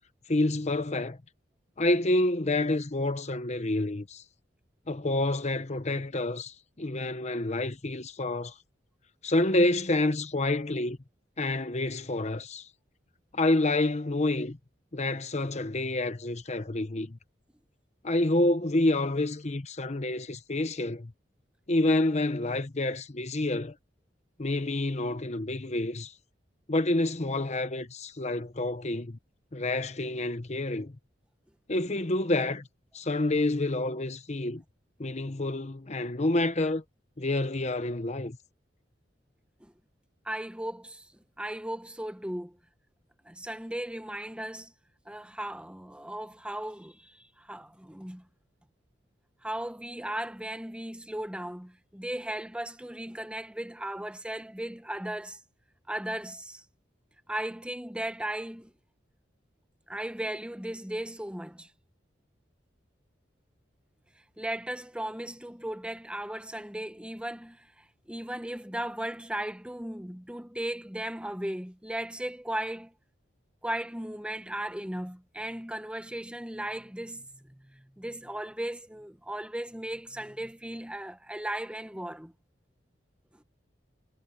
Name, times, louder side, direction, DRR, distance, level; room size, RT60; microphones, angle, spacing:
voice 1, 0.3-1.2 1.8-4.2 4.9-8.5 9.2-11.0 11.4-12.7 13.3-14.6 14.9-17.2 18.0-21.1 21.7-23.7 24.4-26.1 26.7-29.2 29.5-30.9 31.7-32.7 32.9-34.6 35.0-36.8 37.2-38.4, left 2 dB, 40° left, 1.0 m, -28 dB
voice 2, 40.2-41.1 41.4-42.5 43.2-44.7 45.1-48.2 49.4-55.4 55.9-56.6 57.3-58.7 59.9-61.7 64.4-72.9 73.6-82.3, right 1 dB, 5° right, 1.1 m, -36 dB
head